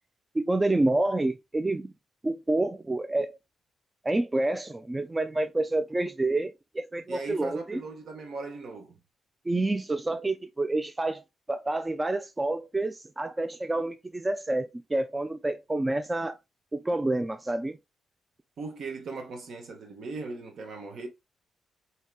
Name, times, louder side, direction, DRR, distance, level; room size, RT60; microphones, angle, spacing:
voice 1, 0.3-1.9 2.2-3.4 4.0-7.8 9.5-11.2 11.5-16.4 16.7-17.8, right 2 dB, 20° right, 0.3 m, -28 dB
voice 2, 7.1-9.0 18.6-21.1, right 3 dB, 65° right, 0.9 m, -38 dB
3.2 x 2.8 x 2.3 m
supercardioid pair, 55°, 0 cm